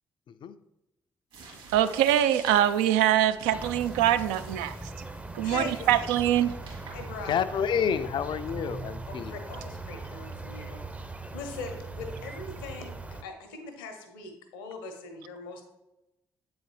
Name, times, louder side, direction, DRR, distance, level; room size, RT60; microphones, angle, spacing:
sound 1, 1.3-7.7, right 3 dB, 55° right, 2.1 m, -48 dB
voice 1, 1.7-4.7 5.3-6.5, right 11 dB, 70° right, 11 dB, 0.4 m, -23 dB
sound 2, 3.5-13.2, right 2 dB, 10° right, 0.5 m, -40 dB
voice 2, 5.4-6.1 6.9-7.3 9.1-10.8 11.3-13.0 13.2-15.6, left 4 dB, 75° left, 6 dB, 0.8 m, -40 dB
voice 3, 7.3-9.6, left 7 dB, 45° left, 13 dB, 0.4 m, -29 dB
7.9 x 3.9 x 3.2 m, 0.96 s
figure-of-eight pair, 40°, 11 cm